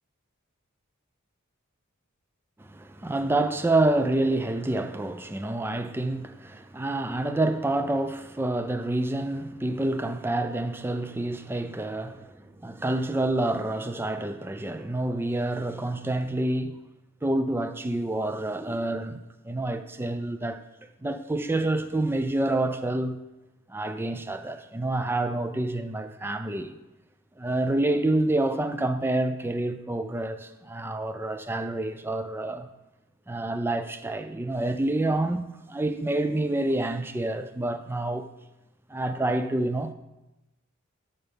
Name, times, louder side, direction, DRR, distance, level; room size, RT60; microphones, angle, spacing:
voice 1, 2.6-16.8 17.2-19.2 19.4-20.6 21.0-23.2 23.7-26.8 27.4-32.7 33.3-38.3 38.9-39.9, right 2 dB, 10° right, 0.4 m, -28 dB
12.5 x 5.6 x 3.5 m
head